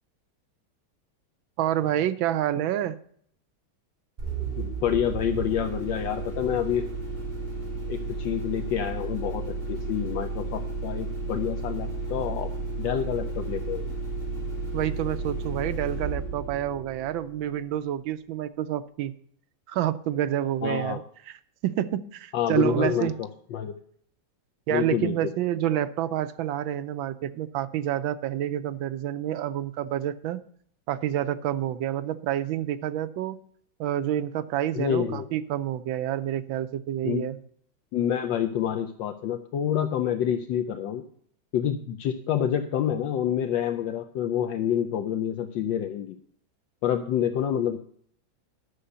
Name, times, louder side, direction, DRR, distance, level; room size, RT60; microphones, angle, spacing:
voice 1, 1.6-3.0 14.7-19.1 19.7-21.4 21.6-23.1 24.7-30.4 30.9-33.4 33.8-37.4, right 11 dB, 80° right, 13 dB, 1.4 m, -28 dB
sound 1, 4.2-17.7, right 3 dB, 25° right, 2.9 m, -33 dB
voice 2, 4.6-6.9 7.9-12.5 12.8-14.0 20.6-21.0 22.3-23.8 24.7-25.1 34.7-35.3 37.0-37.3 37.9-41.0 41.5-46.2 46.8-47.8, left 9 dB, 75° left, 7 dB, 1.3 m, -28 dB
11.5 x 6.5 x 6.7 m, 0.62 s
omnidirectional pair, 2.2 m